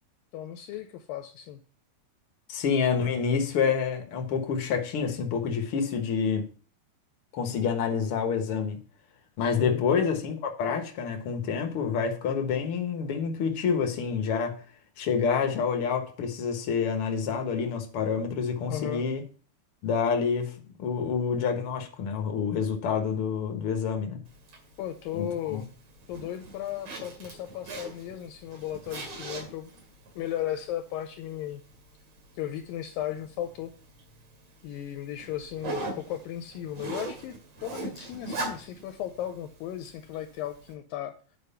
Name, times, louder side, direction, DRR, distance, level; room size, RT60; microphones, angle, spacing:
voice 1, 0.3-1.6 9.4-9.8 18.7-19.0 24.8-25.7 26.1-29.7 30.2-31.6 32.4-33.7 34.6-41.1, left 11 dB, 75° left, 2.3 m, -36 dB
voice 2, 2.5-6.5 7.3-8.8 9.4-14.6 15.0-19.2 19.8-20.5 20.8-24.2 25.1-25.6, left 6 dB, 60° left, 1.4 m, -28 dB
Zipper (clothing), 24.3-40.7, right 2 dB, 50° right, 3.3 m, -42 dB
9.5 x 5.4 x 5.5 m
omnidirectional pair, 4.4 m